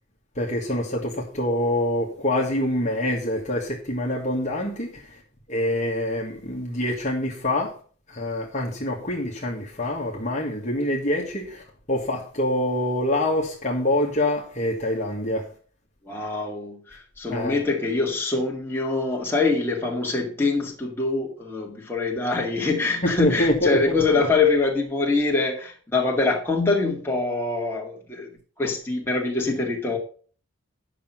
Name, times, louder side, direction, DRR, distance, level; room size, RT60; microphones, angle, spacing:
voice 1, 0.4-5.1 5.5-7.7 8.1-15.5 17.3-17.6 23.0-24.3, left 1 dB, 35° left, 1.7 m, -25 dB
voice 2, 16.0-28.3 28.6-30.0, left 3 dB, 10° left, 2.2 m, -24 dB
10.0 x 6.2 x 5.7 m
head